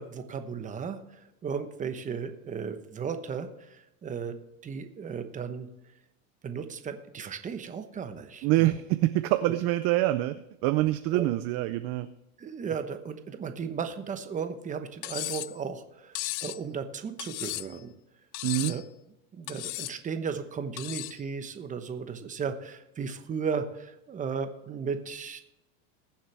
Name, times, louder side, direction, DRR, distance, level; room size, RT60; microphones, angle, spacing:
voice 1, 0.0-4.4 4.6-5.7 6.4-8.7 9.4-9.6 11.1-11.2 12.4-17.9 18.5-18.8 19.3-25.5, right 6 dB, 15° right, 8 dB, 1.0 m, -35 dB
voice 2, 8.4-10.3 10.6-12.1 18.4-18.7, right 16 dB, 35° right, 11 dB, 0.4 m, -25 dB
Cutlery silverware, 15.0-15.6 16.2-16.6 17.2-17.8 18.3-18.8 19.5-20.0 20.8-21.2, left 19 dB, 70° left, 0.6 m, -35 dB
21.5 x 7.3 x 3.4 m, 0.91 s
supercardioid pair, 140°, 44 cm